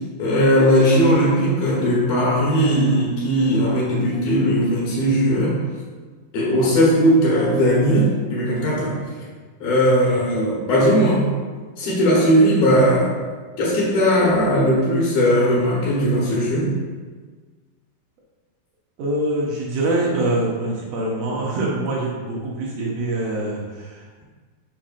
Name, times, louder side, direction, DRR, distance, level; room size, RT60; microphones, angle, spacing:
voice 1, 0.2-5.6 6.3-9.1 9.6-11.3 11.8-13.1 13.6-16.7, equal, 70° left, -6 dB, 3.0 m, -18 dB
voice 2, 19.0-24.2, right 2 dB, 85° right, -4 dB, 1.4 m, -24 dB
8.1 x 5.6 x 2.5 m, 1.5 s
omnidirectional pair, 4.4 m